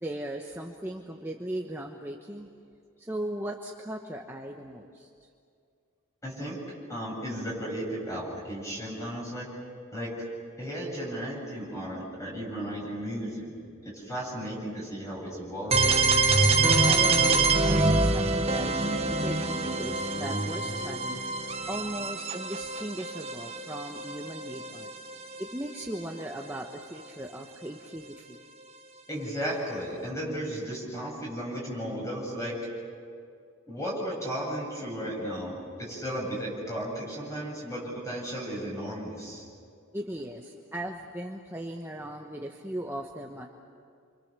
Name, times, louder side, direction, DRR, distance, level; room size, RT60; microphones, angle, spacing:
voice 1, 0.0-2.5 3.0-5.1 16.9-21.2 21.7-24.9 25.4-28.4 39.9-43.5, right 1 dB, 10° right, 1 dB, 1.1 m, -38 dB
voice 2, 6.2-6.6 6.9-9.5 9.9-10.3 10.6-13.5 13.8-16.0 29.1-32.5 33.7-39.4, equal, 15° left, -3 dB, 7.8 m, -35 dB
sound 1, 15.7-25.4, right 3 dB, 30° right, 1.3 m, -25 dB
29.5 x 25.5 x 6.8 m, 2.4 s
head